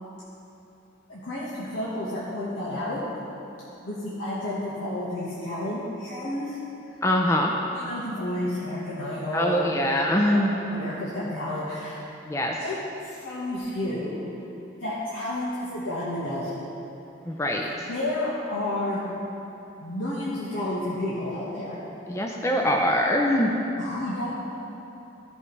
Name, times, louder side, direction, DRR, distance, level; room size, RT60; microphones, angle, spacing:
voice 1, 1.1-3.1 3.8-6.6 7.7-9.7 10.2-10.4 10.7-12.0 12.6-12.8 13.0-14.2 14.8-16.7 17.8-19.0 19.8-21.8 23.8-24.4, left 1 dB, 80° left, -9 dB, 1.4 m, -31 dB
voice 2, 7.0-7.5 9.3-10.5 12.2-12.6 17.2-17.9 22.1-23.5, equal, 15° left, 0 dB, 0.5 m, -23 dB
15.0 x 5.5 x 3.2 m, 2.9 s
head